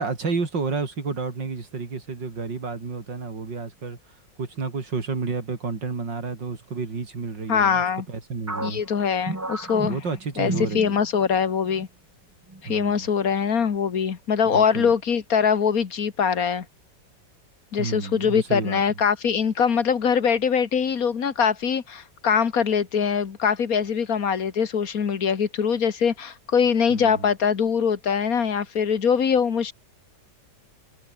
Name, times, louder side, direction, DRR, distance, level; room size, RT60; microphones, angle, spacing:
voice 1, 0.0-4.0 4.4-8.8 9.8-11.0 12.7-13.1 14.4-14.9 17.8-18.8 26.9-27.3, right 4 dB, 90° right, 4.1 m, -30 dB
voice 2, 7.5-8.1 8.6-10.0 10.4-11.9 12.6-16.7 17.7-29.7, left 7 dB, 55° left, 1.9 m, -23 dB
sound 1, 8.5-11.3 11.6-11.9 12.5-13.0, right 2 dB, 10° right, 1.1 m, -33 dB
omnidirectional pair, 1.9 m